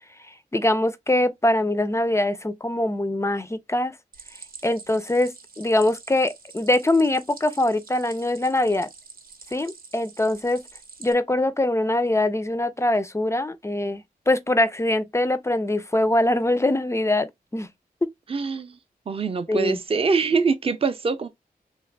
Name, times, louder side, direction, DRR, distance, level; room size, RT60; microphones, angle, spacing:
voice 1, 0.5-4.0 4.6-8.9 9.5-10.6 11.0-17.7 18.0-18.1 19.5-19.8, left 1 dB, 20° left, 0.4 m, -23 dB
Stream, 4.1-11.1, right 5 dB, 70° right, 0.7 m, -46 dB
voice 2, 18.3-18.8 19.1-21.3, right 4 dB, 35° right, 0.5 m, -24 dB
3.1 x 2.4 x 3.2 m
wide cardioid pair, 110°, 16 cm